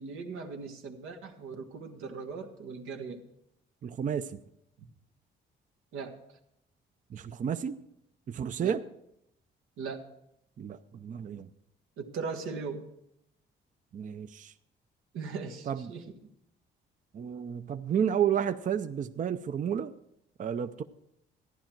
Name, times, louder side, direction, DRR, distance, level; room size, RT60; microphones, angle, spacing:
voice 1, 0.0-3.2 5.9-6.2 8.6-8.8 9.8-10.1 12.0-12.9 15.1-16.0, right 5 dB, 90° right, 4 dB, 1.4 m, -39 dB
voice 2, 3.8-4.4 7.1-7.8 8.3-8.8 10.6-11.5 13.9-14.5 15.7-15.9 17.1-19.9 20.4-20.8, right 8 dB, 40° right, 10 dB, 0.5 m, -31 dB
14.0 x 10.5 x 4.5 m, 0.79 s
cardioid pair, 90°, 20 cm